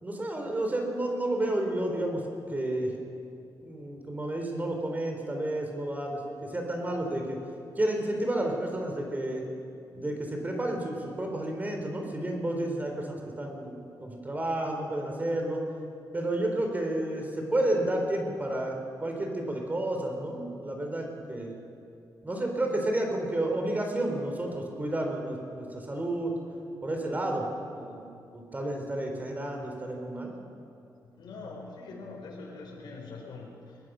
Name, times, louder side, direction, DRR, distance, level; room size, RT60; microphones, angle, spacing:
voice 1, 0.0-2.2 2.5-2.9 3.6-7.4 7.8-9.4 10.0-15.6 16.1-21.6 22.2-26.3 26.8-28.0 28.3-30.3, right 1 dB, 25° right, 2 dB, 3.9 m, -31 dB
voice 2, 31.2-33.8, left 3 dB, 90° left, -1 dB, 4.4 m, -43 dB
22.0 x 20.5 x 6.4 m, 2.6 s
cardioid pair, 110°, 7 cm